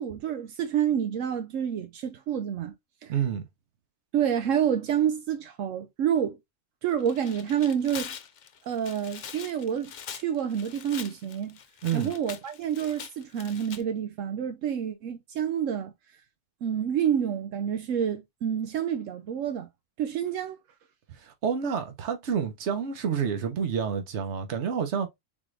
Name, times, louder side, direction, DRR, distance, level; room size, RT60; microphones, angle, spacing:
voice 1, 0.0-2.7 3.0-3.1 4.1-6.4 6.8-8.2 8.6-11.6 11.9-15.9 16.6-19.7 20.0-20.6, right 9 dB, 80° right, 1.0 m, -28 dB
voice 2, 3.1-3.4 11.8-12.1 21.2-25.1, right 7 dB, 65° right, 1.2 m, -29 dB
Tearing, 6.9-13.8, left 8 dB, 55° left, 0.5 m, -43 dB
4.2 x 3.6 x 3.1 m
omnidirectional pair, 1.3 m